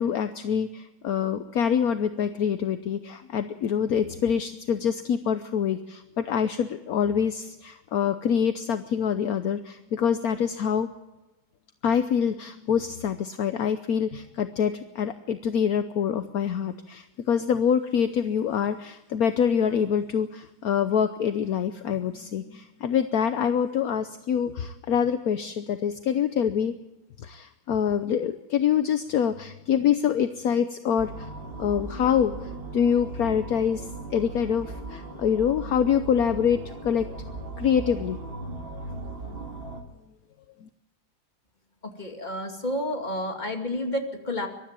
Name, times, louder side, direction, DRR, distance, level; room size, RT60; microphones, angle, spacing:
voice 1, 0.0-10.9 11.8-26.7 27.2-31.3 31.6-37.0 37.6-38.2 39.3-39.4 40.6-40.7, left 8 dB, 65° left, 9 dB, 1.3 m, -25 dB
sound 1, 31.0-39.8, right 2 dB, 35° right, 2.3 m, -38 dB
voice 2, 41.8-44.5, left 1 dB, 25° left, 3 dB, 2.6 m, -30 dB
23.0 x 13.0 x 8.8 m, 1.0 s
omnidirectional pair, 1.7 m